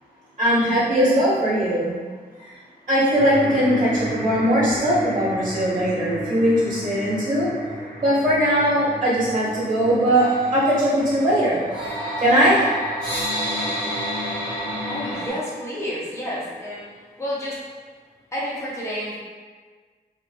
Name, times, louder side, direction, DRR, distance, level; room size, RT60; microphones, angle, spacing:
voice 1, 0.4-1.9 2.9-7.5 8.0-11.6 12.2-12.7, equal, 50° right, -10 dB, 1.3 m, -20 dB
sound 1, 3.1-15.3, equal, 70° left, 1.1 m, -31 dB
voice 2, 14.9-16.9 17.2-17.6 18.3-19.1, equal, 15° left, -7 dB, 0.7 m, -30 dB
2.9 x 2.4 x 2.2 m, 1.5 s
wide cardioid pair, 165°, 17 cm